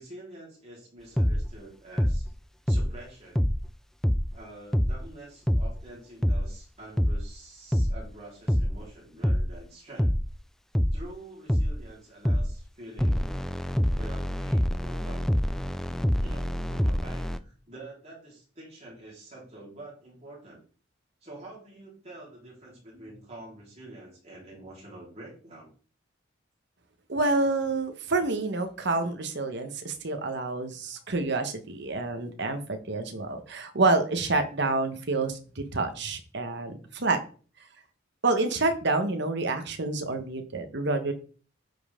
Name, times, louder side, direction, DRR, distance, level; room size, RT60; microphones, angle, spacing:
voice 1, 0.0-2.3 2.7-3.5 4.3-10.1 10.9-13.3 14.0-15.3 16.2-20.6 21.2-25.7, right 2 dB, 30° right, -4 dB, 4.1 m, -47 dB
sound 1, 1.2-1.5 2.0-2.3 2.7-3.0 3.3-3.6 4.0-4.3 4.7-5.0 5.5-5.8 6.2-6.5 7.0-7.3 7.7-8.0 8.5-8.8 9.2-9.5 10.0-10.3 10.7-11.0 11.5-11.8 12.2-12.6 13.0-17.4, equal, ahead, 0.3 m, -25 dB
voice 2, 27.1-37.2 38.2-41.1, right 3 dB, 55° right, 7 dB, 1.2 m, -28 dB
9.1 x 5.5 x 3.7 m, 0.39 s
head